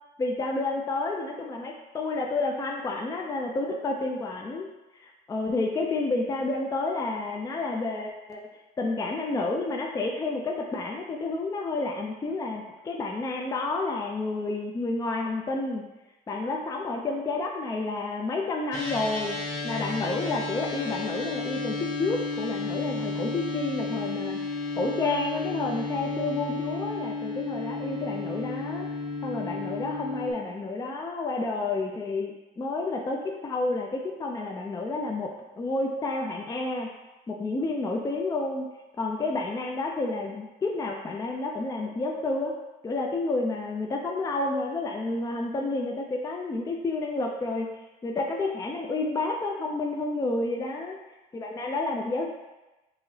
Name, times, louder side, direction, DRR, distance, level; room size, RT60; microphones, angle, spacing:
voice 1, 0.2-4.7 5.0-8.4 8.8-15.8 16.3-19.4 19.6-24.4 24.8-28.9 29.2-36.9 37.3-38.7 39.0-42.5 42.8-47.7 48.0-50.9 51.3-52.3, left 2 dB, 20° left, 1 dB, 0.4 m, -30 dB
sound 1, 18.7-30.3, left 3 dB, 50° left, 1.3 m, -33 dB
5.4 x 2.9 x 2.7 m, 1.1 s
cardioid pair, 110°, 17 cm